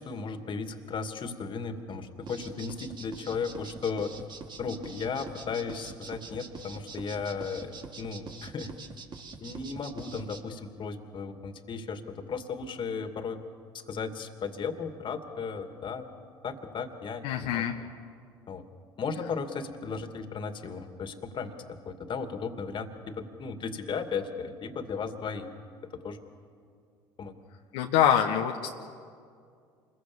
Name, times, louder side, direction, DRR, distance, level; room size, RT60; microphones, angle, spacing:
voice 1, 0.0-4.1 4.6-8.7 9.4-13.4 13.7-16.1 16.4-17.7 18.5-18.6 19.0-25.5 25.9-26.2 27.2-27.4, left 5 dB, 45° left, 7 dB, 2.5 m, -35 dB
sound 1, 2.3-10.4, right 4 dB, 40° right, 3.0 m, -44 dB
voice 2, 17.2-17.7 27.7-28.7, left 9 dB, 75° left, 2 dB, 1.4 m, -25 dB
27.5 x 22.5 x 7.3 m, 2.3 s
hypercardioid pair, 70°, 12 cm